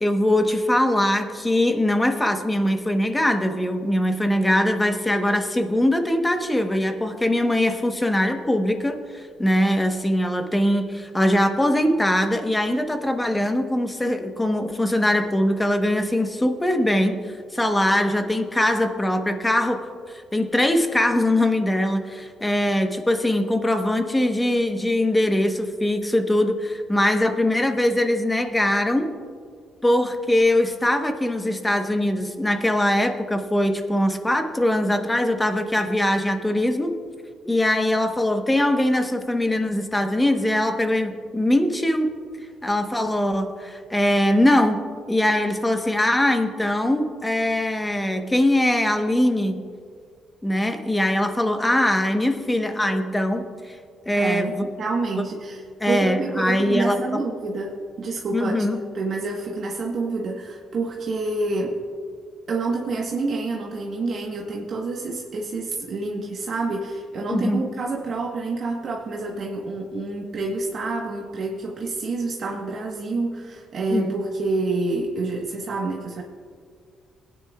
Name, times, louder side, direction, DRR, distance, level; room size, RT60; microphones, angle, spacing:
voice 1, 0.0-17.2 17.5-19.8 20.3-29.1 29.8-36.9 37.5-42.1 42.6-49.6 50.4-53.5 54.1-54.6 55.8-57.0 58.3-58.8 67.3-67.6 73.9-74.1, left 1 dB, 10° left, 6 dB, 1.0 m, -22 dB
voice 2, 54.1-61.8 62.5-76.2, right 3 dB, 55° right, -1 dB, 1.2 m, -28 dB
20.0 x 9.5 x 2.3 m, 2.1 s
cardioid pair, 90°, 0 cm